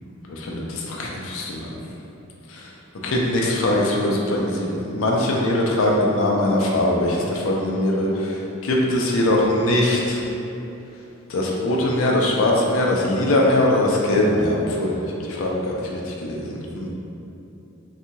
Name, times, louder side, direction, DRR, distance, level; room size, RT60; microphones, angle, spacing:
voice 1, 0.3-1.7 2.5-2.6 3.0-10.2 11.3-15.0 15.2-16.9, left 1 dB, 65° left, -2 dB, 0.4 m, -21 dB
2.6 x 2.3 x 2.8 m, 2.8 s
head